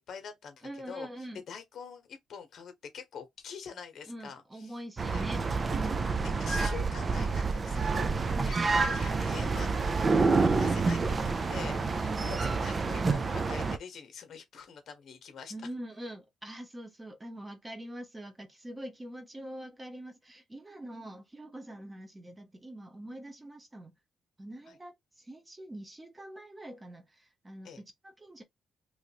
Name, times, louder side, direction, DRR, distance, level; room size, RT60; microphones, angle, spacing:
voice 1, 0.0-1.1 1.5-4.8 5.1-5.3 5.6-5.9 6.4-15.5 24.7-24.8 27.6-27.8, left 7 dB, 65° left, 1.0 m, -45 dB
voice 2, 0.6-1.4 4.1-5.4 5.8-6.2 8.3-8.6 11.6-12.3 15.5-23.9 24.4-28.4, right 1 dB, 20° right, 0.9 m, -44 dB
sound 1, 5.0-13.8, right 4 dB, 35° right, 0.4 m, -28 dB
3.1 x 2.5 x 2.8 m
cardioid pair, 90°, 0 cm